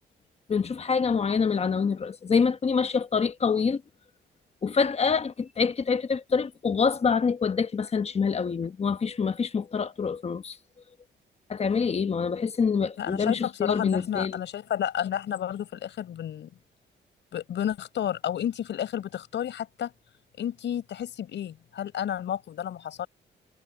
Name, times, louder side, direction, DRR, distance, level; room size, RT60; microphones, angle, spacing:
voice 1, 0.5-3.8 4.6-10.6 11.5-14.4, left 5 dB, 35° left, 1.1 m, -26 dB
voice 2, 13.0-16.5 17.3-19.9 20.4-23.1, left 10 dB, 75° left, 5.0 m, -31 dB
cardioid pair, 125°, 19 cm